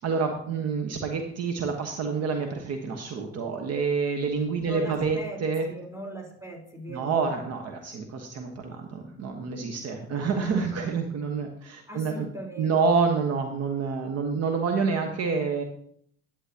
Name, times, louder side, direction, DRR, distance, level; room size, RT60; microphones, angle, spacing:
voice 1, 0.0-5.7 6.9-12.3 12.6-15.6, right 5 dB, 50° right, 4 dB, 1.4 m, -28 dB
voice 2, 4.6-7.3 11.9-13.0, equal, 10° right, 0 dB, 4.1 m, -39 dB
11.5 x 9.5 x 2.9 m, 0.65 s
hypercardioid pair, 70°, 32 cm